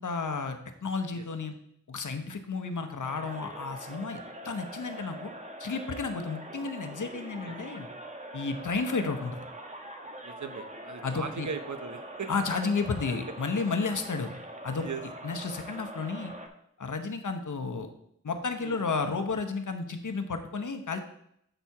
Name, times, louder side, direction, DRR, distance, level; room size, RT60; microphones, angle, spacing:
voice 1, 0.0-1.5 1.9-4.2 4.4-5.3 5.6-7.9 8.3-9.4 11.0-11.5 12.3-14.3 14.6-14.9 15.2-16.3 16.8-17.9 18.2-21.0, left 4 dB, 75° left, 7 dB, 0.9 m, -32 dB
sound 1, 3.0-16.5, right 1 dB, 25° right, 1.1 m, -43 dB
voice 2, 10.2-12.3 14.8-15.0 18.6-18.8, right 5 dB, 65° right, 9 dB, 0.8 m, -38 dB
7.8 x 4.3 x 4.7 m, 0.73 s
wide cardioid pair, 45°, 31 cm